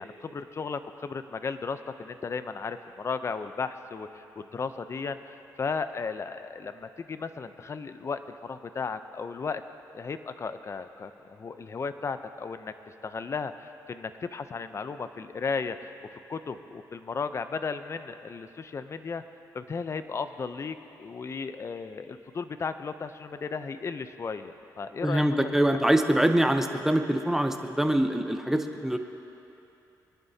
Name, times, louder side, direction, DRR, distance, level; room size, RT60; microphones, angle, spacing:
voice 1, 0.0-9.6 9.9-12.7 13.0-19.2 19.5-25.5, left 5 dB, 40° left, 10 dB, 0.6 m, -35 dB
voice 2, 25.0-29.0, right 1 dB, 5° right, 6 dB, 0.8 m, -24 dB
23.5 x 11.0 x 2.8 m, 2.9 s
cardioid pair, 90°, 7 cm